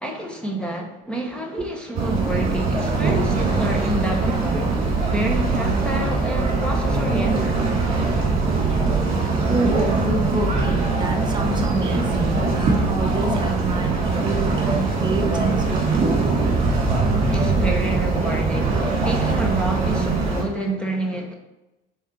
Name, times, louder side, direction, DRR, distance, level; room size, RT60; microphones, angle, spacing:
voice 1, 0.0-7.6 17.3-21.3, right 1 dB, 5° left, 0.7 m, -29 dB
sound 1, 1.9-20.4, right 3 dB, 40° right, 2.0 m, -22 dB
voice 2, 9.5-16.2, right 2 dB, 25° right, 0.8 m, -27 dB
7.0 x 3.8 x 4.5 m
cardioid pair, 140°, 18 cm